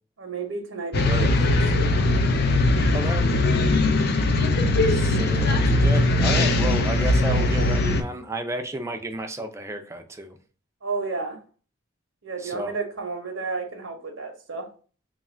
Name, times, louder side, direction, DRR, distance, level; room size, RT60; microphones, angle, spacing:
voice 1, 0.2-2.2 7.3-7.8 10.8-11.4 12.2-14.7, right 4 dB, 75° right, 0.8 m, -32 dB
sound 1, 0.9-8.0, left 2 dB, 50° left, 0.5 m, -20 dB
voice 2, 1.0-1.5 2.8-3.3 4.9-10.4 12.4-12.7, right 1 dB, 15° right, 0.4 m, -32 dB
3.1 x 2.4 x 4.2 m
head